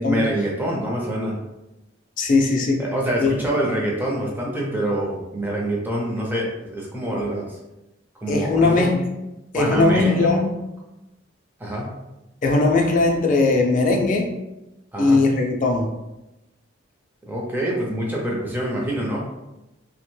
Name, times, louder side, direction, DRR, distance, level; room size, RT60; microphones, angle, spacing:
voice 1, 0.0-1.4 2.8-7.6 8.1-8.9 9.5-10.4 11.6-11.9 14.9-15.3 17.3-19.2, right 1 dB, 10° right, -3 dB, 0.5 m, -25 dB
voice 2, 2.2-2.8 3.2-3.3 8.3-9.0 9.5-10.5 12.4-14.3 15.0-15.9, left 3 dB, 40° left, 2 dB, 0.4 m, -19 dB
2.9 x 2.1 x 3.1 m, 0.97 s
head